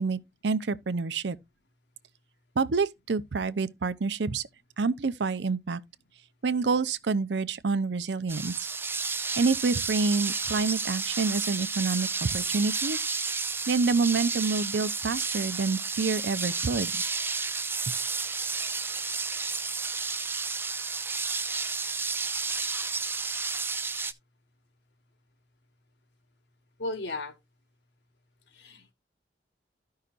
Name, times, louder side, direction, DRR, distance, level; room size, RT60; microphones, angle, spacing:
voice 1, 0.0-1.4 2.6-4.4 4.8-5.8 6.4-8.5 9.4-13.0 13.7-17.0 17.9-18.0, right 4 dB, 80° right, 0.6 m, -27 dB
sound 1, 8.3-24.1, right 4 dB, 10° right, 0.4 m, -31 dB
voice 2, 26.8-27.3 28.5-28.9, left 2 dB, 75° left, 1.4 m, -35 dB
13.5 x 5.6 x 2.4 m
head